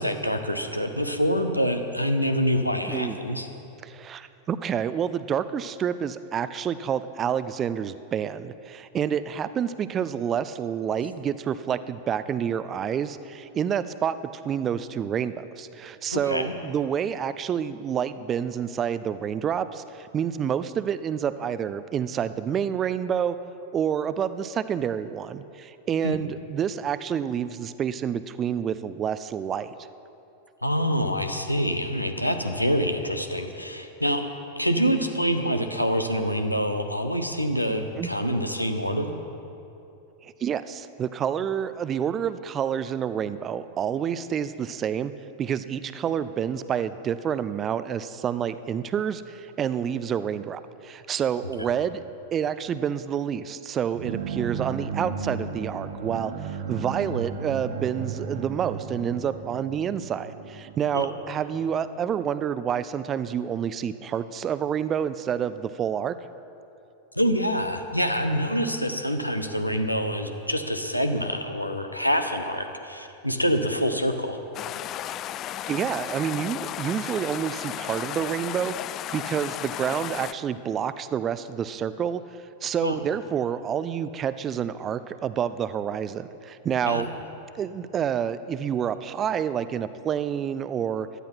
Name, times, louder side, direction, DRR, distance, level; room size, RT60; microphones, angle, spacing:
voice 1, 0.0-3.5 16.1-16.5 26.0-26.2 30.6-34.2 34.6-39.1 51.6-51.7 60.9-61.1 67.1-74.4 82.8-83.0 86.9-87.1, equal, 90° left, 6 dB, 1.1 m, -26 dB
voice 2, 2.9-3.2 3.8-14.2 14.4-23.4 23.7-29.7 38.0-38.1 40.2-45.1 45.4-52.0 52.3-66.2 75.7-78.7 79.1-82.2 82.6-87.1 87.6-91.1, right 8 dB, 25° right, 14 dB, 0.5 m, -28 dB
sound 1, 53.9-61.7, right 6 dB, 60° right, 1.1 m, -34 dB
sound 2, 74.5-80.3, left 12 dB, 35° left, 0.3 m, -34 dB
16.5 x 12.0 x 5.9 m, 2.8 s
figure-of-eight pair, 90°, 0 cm